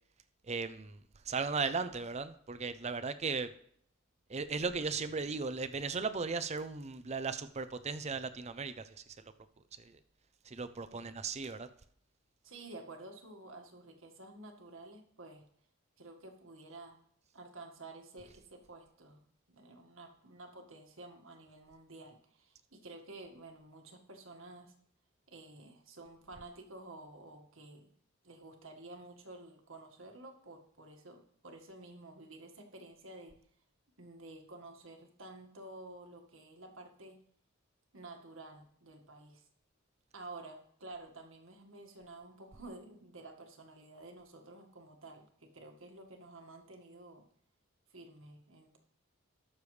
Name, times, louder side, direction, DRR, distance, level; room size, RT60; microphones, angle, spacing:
voice 1, 0.5-1.0 1.3-3.5 4.3-8.8 9.8-9.9 10.5-11.7, right 4 dB, 30° right, 12 dB, 0.6 m, -36 dB
voice 2, 12.4-15.4 16.0-17.0 17.3-19.2 19.5-24.7 25.3-27.9 28.2-33.3 34.0-37.2 37.9-39.5 40.1-47.2 47.9-48.8, right 2 dB, 70° right, 3 dB, 1.8 m, -51 dB
19.5 x 6.8 x 3.3 m, 0.64 s
head